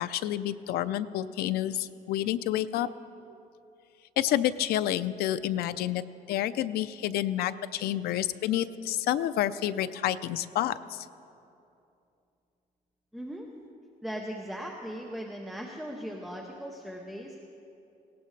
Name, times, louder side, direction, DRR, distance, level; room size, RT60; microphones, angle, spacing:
voice 1, 0.0-2.9 4.2-6.0 6.3-11.1, left 12 dB, 80° left, 13 dB, 0.5 m, -29 dB
voice 2, 13.1-13.5 14.0-17.3, equal, ahead, 0 dB, 0.8 m, -38 dB
19.0 x 17.0 x 3.2 m, 2.7 s
cardioid pair, 170°, 16 cm